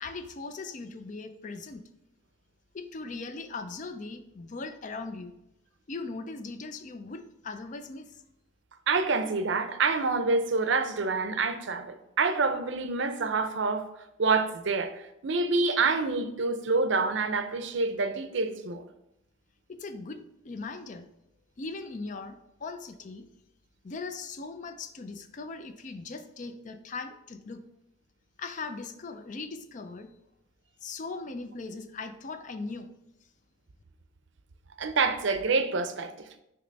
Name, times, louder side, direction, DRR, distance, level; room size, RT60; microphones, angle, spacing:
voice 1, 0.0-1.8 2.7-5.3 5.9-8.2 19.7-21.1 21.6-23.3 23.8-27.6 28.4-30.1 30.8-32.9, left 3 dB, 35° left, 0.4 m, -39 dB
voice 2, 8.9-13.8 14.2-18.8 34.8-36.1, right 4 dB, 60° right, 0.5 m, -27 dB
6.6 x 3.0 x 5.2 m
head